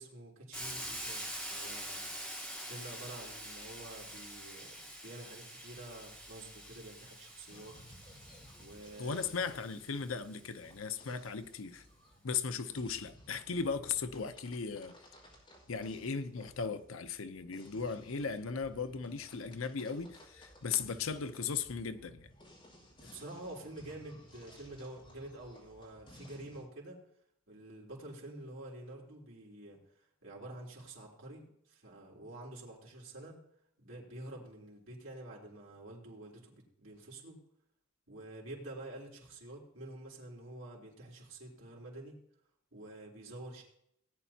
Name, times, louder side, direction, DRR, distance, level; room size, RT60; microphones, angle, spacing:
voice 1, 0.0-2.1 2.6-7.8 8.6-9.3 23.0-27.0 27.5-29.8 30.2-33.4 33.8-37.4 38.1-42.2 42.7-43.6, right 1 dB, 75° right, 3.3 m, -48 dB
Hiss, 0.5-10.4, equal, 5° left, 3.3 m, -45 dB
sound 1, 7.5-26.6, equal, 25° left, 4.9 m, -58 dB
voice 2, 9.0-11.8 12.2-14.9 15.7-22.3, left 5 dB, 85° left, 0.7 m, -37 dB
18.0 x 10.0 x 2.8 m
head